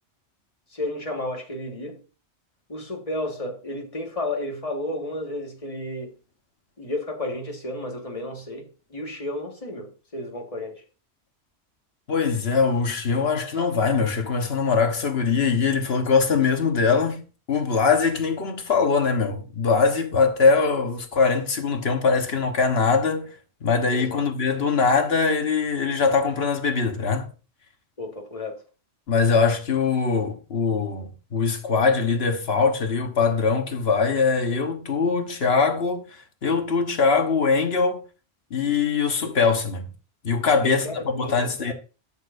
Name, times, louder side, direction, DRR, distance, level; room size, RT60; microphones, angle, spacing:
voice 1, 0.7-2.0 2.7-6.1 6.8-10.8 23.9-24.2 28.0-28.6 39.2-39.3 40.6-41.7, left 1 dB, 30° left, 1.8 m, -32 dB
voice 2, 12.1-17.2 17.5-23.3 23.6-27.3 29.1-38.0 38.5-39.9 40.2-41.7, left 5 dB, 60° left, 1.4 m, -22 dB
12.5 x 6.7 x 2.6 m
omnidirectional pair, 1.2 m